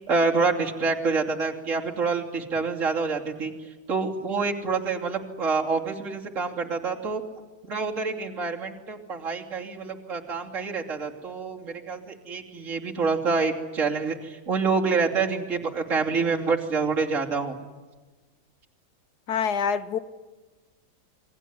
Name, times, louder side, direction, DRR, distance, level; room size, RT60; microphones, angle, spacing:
voice 1, 0.1-3.5 3.9-7.2 7.6-17.6, right 4 dB, 50° right, 3.3 m, -27 dB
voice 2, 19.3-20.0, left 6 dB, 80° left, 1.7 m, -25 dB
28.5 x 22.0 x 9.5 m
omnidirectional pair, 1.7 m